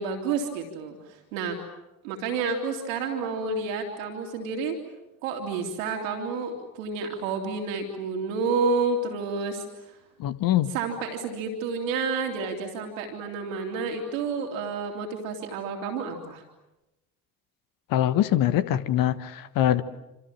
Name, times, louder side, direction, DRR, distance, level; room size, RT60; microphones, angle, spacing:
voice 1, 0.0-1.6 2.0-4.8 5.2-10.0 10.7-16.4, right 4 dB, 70° right, 2 dB, 2.9 m, -30 dB
voice 2, 10.2-10.7 17.9-19.8, left 12 dB, 55° left, 13 dB, 1.5 m, -23 dB
28.0 x 27.0 x 7.5 m, 0.98 s
figure-of-eight pair, 50°, 41 cm